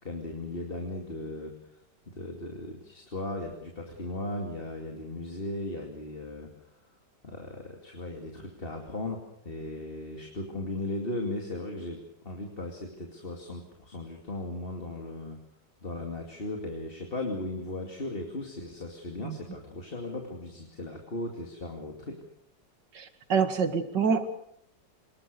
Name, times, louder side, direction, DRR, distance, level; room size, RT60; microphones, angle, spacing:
voice 1, 0.0-1.6 2.1-6.5 7.2-15.4 15.8-22.2, left 2 dB, 30° left, 2 dB, 2.7 m, -37 dB
voice 2, 22.9-24.3, right 6 dB, 70° right, 9 dB, 2.6 m, -26 dB
25.0 x 20.5 x 6.8 m, 0.74 s
omnidirectional pair, 1.9 m